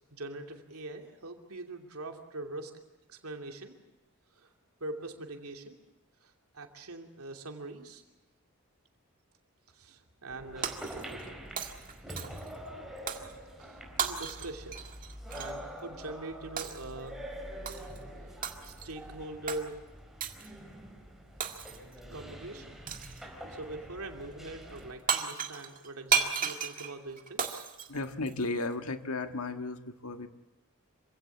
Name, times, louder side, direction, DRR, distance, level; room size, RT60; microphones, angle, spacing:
voice 1, 0.1-2.7 3.1-3.8 4.3-4.5 4.8-5.8 6.2-8.0 9.7-10.7 13.6-14.9 15.3-17.1 18.2-18.4 18.6-19.7 22.1-22.8 23.2-27.6, right 2 dB, 80° right, 4 dB, 2.8 m, -43 dB
sound 1, 10.3-24.9, equal, ahead, 4.4 m, -45 dB
Shatter, 10.6-11.3 11.6-12.5 13.1-13.3 14.0-15.6 16.6-16.9 17.7-18.0 18.4-18.9 19.5-19.6 20.2-20.5 21.4-21.9 22.9-23.2 24.8-24.9 25.1-28.7, right 6 dB, 40° right, 1.9 m, -34 dB
voice 2, 27.9-30.3, left 2 dB, 85° left, 8 dB, 1.6 m, -34 dB
26.5 x 16.5 x 8.4 m, 1.0 s
head